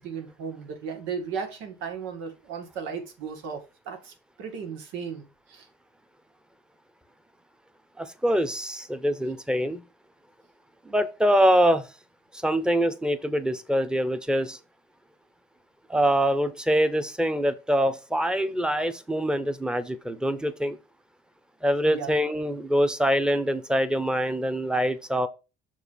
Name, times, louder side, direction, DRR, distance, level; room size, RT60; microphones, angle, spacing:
voice 1, 0.0-5.7 21.9-22.1, right 6 dB, 90° right, 2.2 m, -36 dB
voice 2, 8.0-9.8 10.8-11.9 12.3-14.6 15.9-20.8 21.6-25.3, equal, 5° right, 0.9 m, -24 dB
6.6 x 4.6 x 5.2 m
cardioid pair, 120°, 19 cm